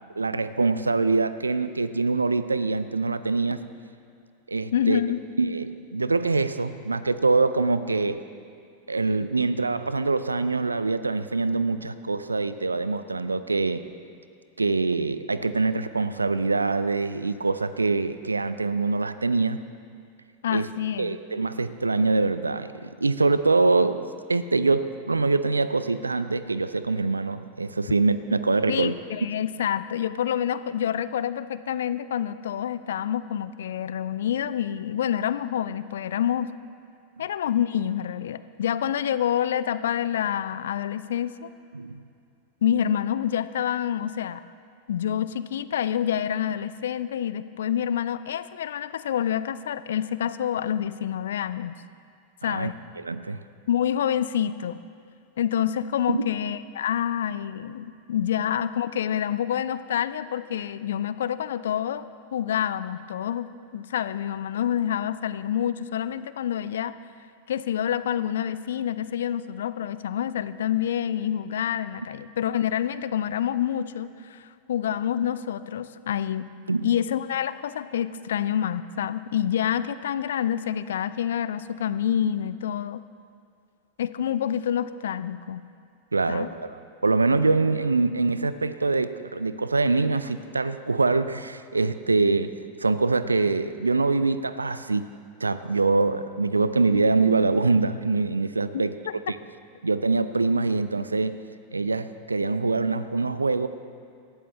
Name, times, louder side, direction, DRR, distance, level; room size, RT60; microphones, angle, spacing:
voice 1, 0.2-3.6 4.5-5.0 5.4-8.2 8.9-13.8 14.6-19.6 20.5-20.7 21.0-24.0 24.3-28.9 41.7-42.0 52.4-52.7 53.0-53.4 56.1-56.3 76.7-76.9 86.1-86.7 87.0-92.5 92.8-95.1 95.4-99.4 99.8-101.4 101.7-103.7, right 3 dB, 80° right, 13 dB, 0.5 m, -24 dB
voice 2, 4.7-5.2 20.4-21.2 28.7-36.5 37.2-41.5 42.6-44.4 44.9-51.8 52.4-52.8 53.7-54.8 55.4-62.1 62.3-66.9 67.5-76.5 76.8-83.0 84.0-85.6 86.3-86.5 99.1-99.2, left 9 dB, 60° left, 15 dB, 0.5 m, -27 dB
19.5 x 14.5 x 3.4 m, 2.4 s
figure-of-eight pair, 90°, 0 cm